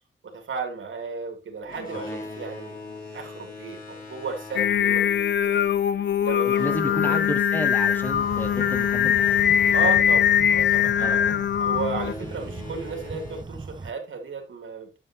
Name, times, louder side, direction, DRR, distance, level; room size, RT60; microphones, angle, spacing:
voice 1, 0.2-2.8 3.1-5.6 6.2-7.2 9.7-11.2 11.6-15.0, right 5 dB, 80° right, 2.8 m, -34 dB
Boat Water vehicle, 1.6-11.0 11.8-13.4, left 3 dB, 45° left, 3.5 m, -42 dB
voice 2, 1.9-2.3 6.5-9.4 11.0-11.6 12.3-12.4, equal, 10° left, 1.0 m, -33 dB
Singing, 4.6-12.1, left 9 dB, 65° left, 0.5 m, -22 dB
sound 1, 8.0-13.9, right 3 dB, 20° right, 0.6 m, -38 dB
11.0 x 7.4 x 2.9 m
wide cardioid pair, 150°, 20 cm